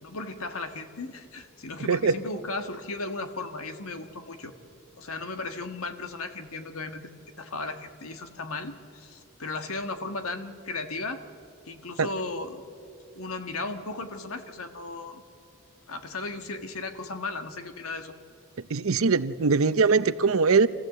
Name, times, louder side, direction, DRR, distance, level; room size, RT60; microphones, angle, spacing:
voice 1, 0.0-4.5 5.0-7.1 7.4-11.2 11.6-12.6 13.1-15.2 15.9-18.1, left 3 dB, 80° left, 7 dB, 1.6 m, -36 dB
voice 2, 18.7-20.7, right 4 dB, 75° right, 15 dB, 0.7 m, -21 dB
26.0 x 15.0 x 7.9 m, 2.5 s
head